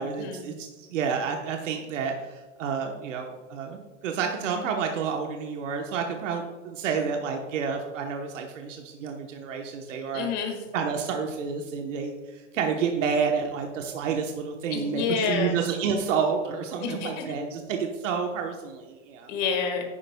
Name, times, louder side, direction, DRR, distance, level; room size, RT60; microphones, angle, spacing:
voice 1, 0.0-10.3 10.7-19.4, right 6 dB, 80° right, 3 dB, 1.1 m, -29 dB
voice 2, 10.1-10.7 14.7-15.6 16.8-17.3 19.3-19.8, left 6 dB, 35° left, 3 dB, 1.6 m, -29 dB
11.0 x 10.0 x 2.2 m, 1.2 s
supercardioid pair, 170°, 37 cm